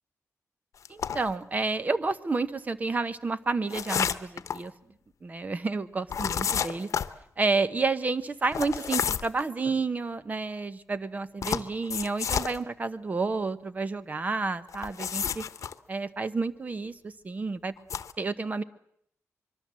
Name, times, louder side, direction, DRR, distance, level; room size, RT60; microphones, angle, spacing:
sound 1, 0.9-1.3 3.7-4.6 6.1-7.1 8.5-9.4 11.4-12.6 14.7-15.7 17.8-18.1, left 7 dB, 75° left, 0.9 m, -30 dB
voice 1, 0.9-4.7 5.2-6.9 7.4-15.4 15.9-17.7 18.2-18.6, right 3 dB, 30° right, 13 dB, 1.0 m, -30 dB
24.5 x 23.0 x 7.5 m, 0.72 s
wide cardioid pair, 155°, 5 cm